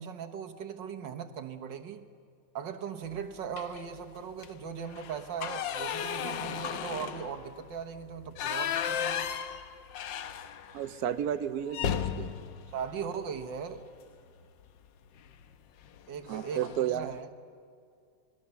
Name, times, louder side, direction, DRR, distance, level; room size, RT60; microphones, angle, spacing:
voice 1, 0.0-2.0 2.5-9.3 12.7-13.8 16.1-17.3, right 7 dB, 85° right, 6 dB, 1.9 m, -39 dB
sound 1, 3.5-3.9 4.3-4.5 4.8-10.9 11.2-11.3 11.7-13.8 15.2-15.5 15.8-16.0 16.3-16.9, left 9 dB, 90° left, 1.6 m, -35 dB
voice 2, 10.7-12.3 16.3-17.2, right 10 dB, 65° right, 10 dB, 1.1 m, -32 dB
26.0 x 20.0 x 7.0 m, 2.4 s
omnidirectional pair, 1.9 m